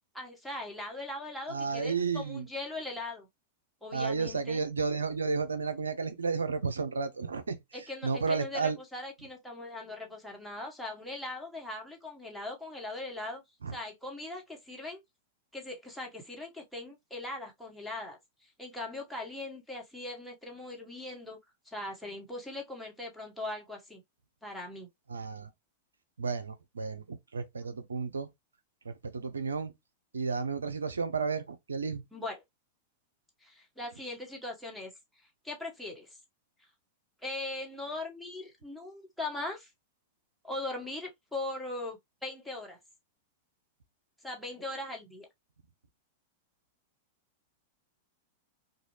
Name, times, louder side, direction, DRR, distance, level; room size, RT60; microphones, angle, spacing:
voice 1, 0.1-3.3 3.8-4.6 7.7-13.4 13.7-15.0 15.5-21.4 21.6-24.0 24.4-24.9 32.1-32.4 33.4-34.9 35.4-36.2 37.2-39.7 40.4-42.8 44.2-45.3, left 2 dB, ahead, 1.2 m, -40 dB
voice 2, 1.5-2.5 3.9-7.6 8.0-8.8 13.6-13.8 25.1-25.5 26.2-28.3 28.8-29.7 30.1-32.0, right 5 dB, 90° right, 0.6 m, -32 dB
2.6 x 2.3 x 3.1 m
hypercardioid pair, 100°, 0 cm